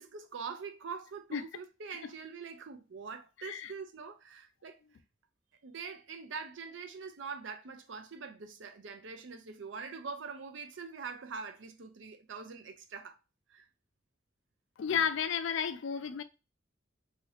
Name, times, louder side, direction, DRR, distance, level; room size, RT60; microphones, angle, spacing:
voice 1, 0.0-4.8 5.6-13.2 13.5-13.7, right 5 dB, 70° right, 0.5 m, -44 dB
voice 2, 14.8-16.2, left 7 dB, 70° left, 0.4 m, -32 dB
2.8 x 2.8 x 3.2 m
head